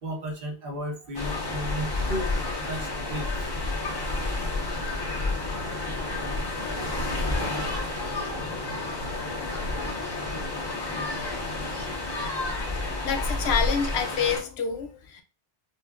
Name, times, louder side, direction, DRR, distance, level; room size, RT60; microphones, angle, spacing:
voice 1, 0.0-2.3 2.7-3.5 8.3-8.4 9.0-9.8, equal, 60° right, 2 dB, 1.0 m, -35 dB
sound 1, 1.1-14.4, left 2 dB, 20° left, 1.1 m, -30 dB
voice 2, 12.9-15.2, left 6 dB, 75° left, 6 dB, 0.8 m, -28 dB
5.5 x 2.1 x 2.3 m, 0.34 s
omnidirectional pair, 1.1 m